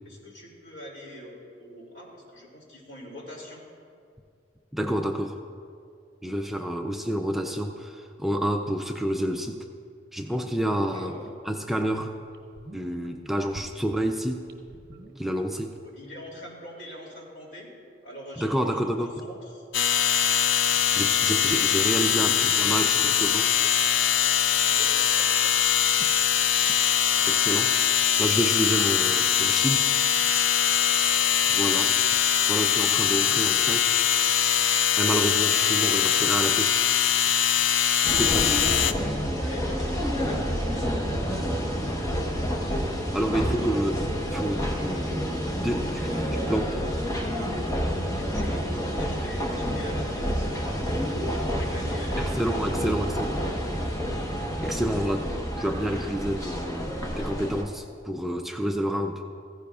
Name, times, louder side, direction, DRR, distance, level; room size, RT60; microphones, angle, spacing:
voice 1, 0.0-3.6 10.9-11.2 15.8-17.7 18.0-18.6 19.0-19.7 22.5-23.1 24.6-25.6 39.3-41.0 46.1-47.3 48.1-50.5 50.9-53.2, equal, 65° left, -2 dB, 2.7 m, -42 dB
voice 2, 4.7-5.4 6.2-9.7 10.1-11.1 11.4-12.2 12.7-14.4 15.2-15.7 18.4-19.2 21.0-23.4 27.3-27.8 28.2-29.9 31.5-31.9 32.5-33.9 35.0-36.8 38.2-38.6 43.1-46.2 46.5-46.6 52.4-53.4 54.6-55.3 55.6-59.2, equal, ahead, 3 dB, 0.4 m, -29 dB
sound 1, 11.2-11.3 11.8-11.9 12.3-13.1 13.5-15.8 16.0-16.1, right 1 dB, 55° right, 1.1 m, -46 dB
sound 2, 19.7-38.9, left 9 dB, 80° left, 0.5 m, -22 dB
sound 3, 38.0-57.6, equal, 20° left, 1.0 m, -29 dB
15.5 x 15.0 x 2.4 m, 2.3 s
head